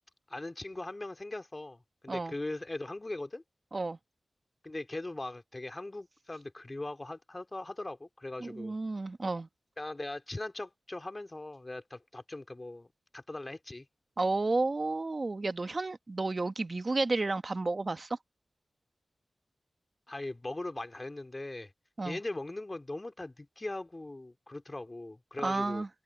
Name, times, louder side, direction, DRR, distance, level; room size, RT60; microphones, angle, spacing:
voice 1, 0.3-3.4 4.6-8.7 9.8-12.9 13.1-13.9 20.1-21.7 22.0-25.8, left 2 dB, 30° left, 2.7 m, -40 dB
voice 2, 8.4-9.5 14.2-18.2 22.0-22.2 25.4-25.9, right 3 dB, 45° right, 1.4 m, -31 dB
open air
cardioid pair, 50°, 0 cm